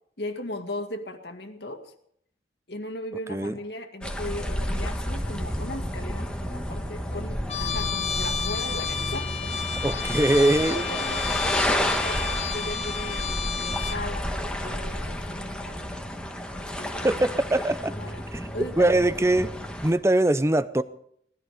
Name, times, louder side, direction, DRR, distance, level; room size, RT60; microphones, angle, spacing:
voice 1, 0.2-1.9 2.7-9.3 10.0-10.2 10.7-16.1 16.6-17.4 17.8-18.2 18.5-19.1, left 1 dB, 70° left, 6 dB, 2.1 m, -37 dB
sound 1, 4.0-19.9, equal, 5° left, 1.3 m, -31 dB
Trumpet, 7.5-14.0, left 7 dB, 35° left, 1.2 m, -31 dB
voice 2, 9.8-10.8 17.0-17.9 18.3-18.5 18.8-19.5 19.8-20.8, right 1 dB, 15° right, 14 dB, 0.6 m, -22 dB
19.0 x 14.0 x 5.0 m, 0.66 s
head